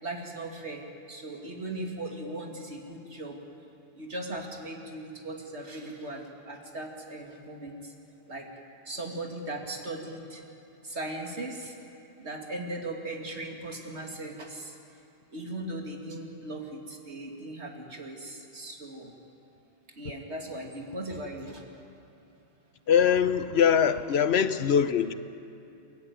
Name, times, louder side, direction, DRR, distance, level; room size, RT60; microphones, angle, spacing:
voice 1, 0.0-3.4 4.0-7.9 8.3-8.5 8.9-10.4 10.8-11.7 12.2-14.8 15.3-19.1 20.0-21.7, right 1 dB, 65° right, 2.8 m, -38 dB
voice 2, 22.9-25.1, left 8 dB, 65° left, 1.1 m, -22 dB
30.0 x 13.5 x 9.4 m
omnidirectional pair, 1.2 m